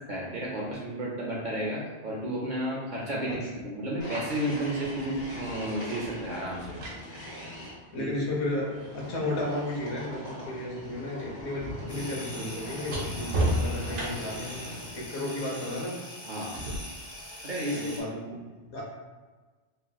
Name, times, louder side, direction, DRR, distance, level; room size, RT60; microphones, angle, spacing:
voice 1, 0.1-3.4 3.6-6.8 8.0-8.1 16.3-16.5 17.4-18.0, right 1 dB, 55° right, -4 dB, 0.6 m, -32 dB
sound 1, 4.0-7.7 8.7-15.1, equal, 45° left, 1.1 m, -41 dB
sound 2, 5.3-5.4 6.4-10.5 10.8-14.5 16.6-16.8, right 1 dB, 90° right, 1.0 m, -34 dB
voice 2, 7.9-15.9 17.7-18.4 18.7-18.8, left 1 dB, 70° left, -4 dB, 1.1 m, -33 dB
sound 3, 11.9-18.0, left 1 dB, 25° left, 0.7 m, -43 dB
3.1 x 2.8 x 2.2 m, 1.3 s
omnidirectional pair, 1.2 m